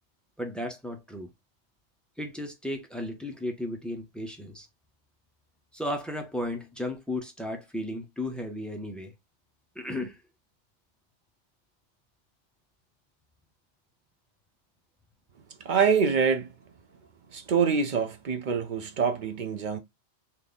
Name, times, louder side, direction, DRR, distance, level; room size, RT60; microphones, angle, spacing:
voice 1, 0.4-1.3 2.2-4.7 5.7-9.1 9.7-10.2, left 1 dB, ahead, 0.6 m, -34 dB
voice 2, 15.6-16.5 17.3-19.8, right 6 dB, 55° right, 0.5 m, -25 dB
3.3 x 2.8 x 3.8 m
omnidirectional pair, 1.2 m